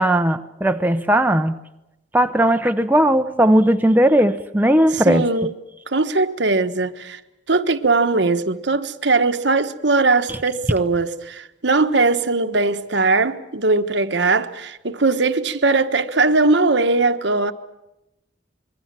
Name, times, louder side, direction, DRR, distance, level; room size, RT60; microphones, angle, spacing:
voice 1, 0.0-1.6 2.1-5.2, right 1 dB, 10° right, 0.8 m, -17 dB
voice 2, 4.9-5.5 5.9-7.2 7.5-17.5, right 3 dB, 80° right, 1.3 m, -20 dB
26.0 x 22.0 x 7.6 m
head